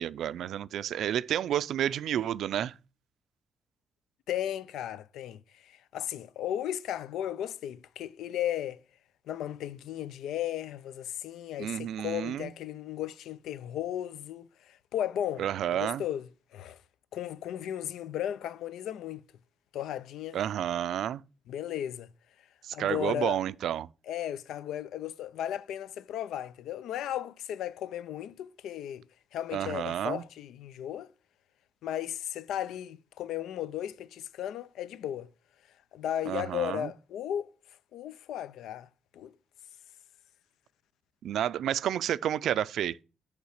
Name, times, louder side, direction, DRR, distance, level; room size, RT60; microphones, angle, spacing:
voice 1, 0.0-2.7 11.6-12.5 15.4-16.0 20.3-21.2 22.6-23.9 29.5-30.2 36.3-36.9 41.2-43.0, right 10 dB, 80° right, 0.4 m, -30 dB
voice 2, 4.3-8.8 9.3-15.4 15.7-16.8 17.1-19.2 19.7-20.4 21.5-22.1 22.7-23.4 24.1-29.0 29.3-31.1 31.8-35.3 35.9-37.5 37.9-38.9 39.1-39.3, left 11 dB, 90° left, 0.4 m, -35 dB
8.2 x 3.4 x 6.4 m
cardioid pair, 95°, 0 cm